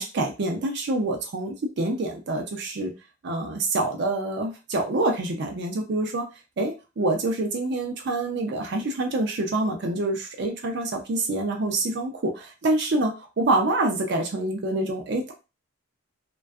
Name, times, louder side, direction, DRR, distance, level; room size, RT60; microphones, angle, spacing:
voice 1, 0.0-2.9 3.2-6.3 6.6-15.3, right 2 dB, 60° right, 3 dB, 0.5 m, -26 dB
2.5 x 2.2 x 2.3 m, 0.28 s
head